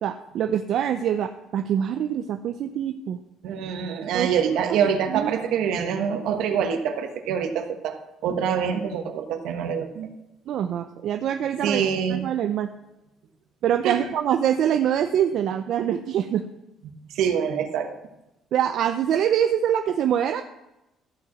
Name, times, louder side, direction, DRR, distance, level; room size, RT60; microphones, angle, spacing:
voice 1, 0.0-3.2 4.1-4.6 5.1-5.3 10.5-11.8 12.1-12.7 13.6-16.4 18.5-20.4, right 9 dB, 65° right, 7 dB, 0.6 m, -24 dB
voice 2, 3.4-8.0 8.2-10.1 11.6-12.3 13.8-14.0 16.8-17.9, right 7 dB, 80° right, 6 dB, 1.3 m, -25 dB
14.0 x 4.8 x 7.2 m, 0.93 s
cardioid pair, 115°, 0 cm